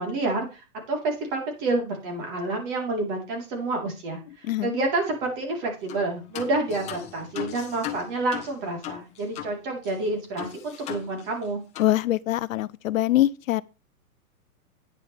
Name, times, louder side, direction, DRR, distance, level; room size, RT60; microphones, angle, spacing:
voice 1, 0.0-4.2 4.6-11.6, right 2 dB, 35° right, 4.0 m, -28 dB
voice 2, 4.4-4.8 11.8-13.6, left 14 dB, 65° left, 0.6 m, -23 dB
sound 1, 5.9-6.1 6.3-9.6 9.8-9.9 10.4-11.5 11.7-11.9, left 11 dB, 15° left, 0.9 m, -37 dB
10.5 x 9.4 x 3.5 m
hypercardioid pair, 160°, 44 cm